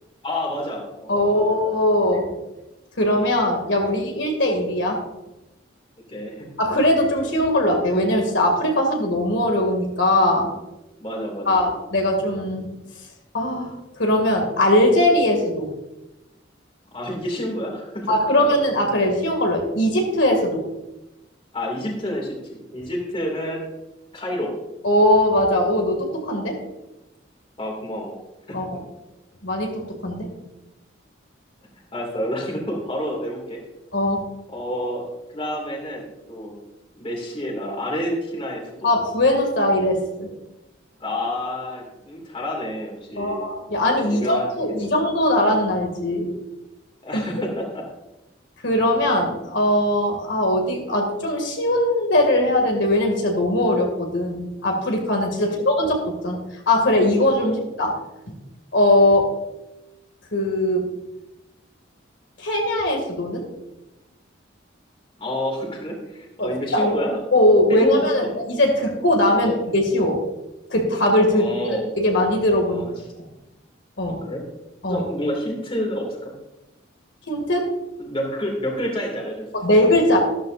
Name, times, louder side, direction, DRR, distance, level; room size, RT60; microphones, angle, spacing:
voice 1, 0.2-1.6 3.9-4.0 6.1-6.5 11.0-11.6 16.9-18.5 21.5-23.6 24.1-24.5 27.6-28.2 28.5-28.7 31.9-33.6 34.5-35.1 35.3-36.5 36.9-38.9 41.0-43.5 44.0-45.0 47.0-47.8 55.4-55.6 57.4-57.6 65.2-67.2 67.7-68.3 69.4-69.6 71.3-71.8 72.7-72.9 74.1-74.5 74.8-76.3 78.0-79.5, equal, 30° left, 0 dB, 2.4 m, -29 dB
voice 2, 1.1-2.3 3.0-5.0 6.6-10.5 11.5-12.7 13.3-13.7 14.0-15.7 18.1-20.6 24.8-26.6 28.5-28.8 29.4-30.3 33.9-34.2 38.8-40.3 43.2-46.3 47.1-47.4 48.6-56.4 56.7-58.0 58.7-59.3 60.3-60.9 62.4-63.4 66.4-66.9 67.3-70.2 70.7-72.8 74.0-74.2 74.8-75.0 77.3-77.7 79.5-80.2, left 1 dB, 70° left, 2 dB, 2.4 m, -20 dB
13.5 x 13.0 x 2.6 m, 0.97 s
head